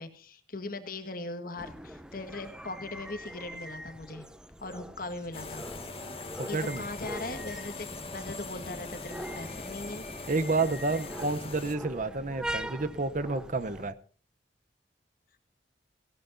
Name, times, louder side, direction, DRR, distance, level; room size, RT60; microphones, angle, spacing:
voice 1, 0.0-4.2 4.6-5.6 6.5-7.9 8.1-10.0, left 2 dB, 50° left, 8 dB, 1.6 m, -39 dB
sound 1, 1.6-13.9, right 1 dB, 5° right, 0.7 m, -43 dB
sound 2, 5.3-11.7, left 3 dB, 35° left, 1.8 m, -42 dB
voice 2, 6.4-6.8 10.3-13.9, right 3 dB, 45° right, 13 dB, 0.8 m, -30 dB
18.0 x 16.0 x 2.7 m, 0.41 s
head